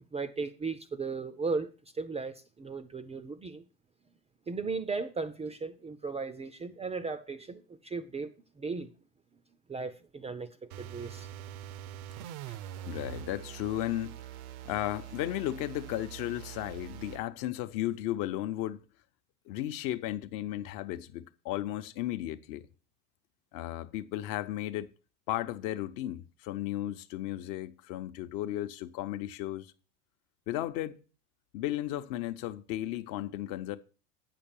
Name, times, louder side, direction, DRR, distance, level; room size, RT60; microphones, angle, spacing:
voice 1, 0.1-3.7 4.5-8.9 9.7-10.5 10.8-11.3, right 4 dB, 15° right, 0.5 m, -36 dB
sound 1, 10.7-17.3, right 11 dB, 65° right, 0.8 m, -44 dB
voice 2, 12.9-14.2 14.6-18.8 19.5-22.7 23.5-24.9 25.3-29.7 30.5-31.0 31.5-33.8, left 14 dB, 50° left, 0.8 m, -35 dB
8.5 x 6.0 x 6.7 m
hypercardioid pair, 85°, 47 cm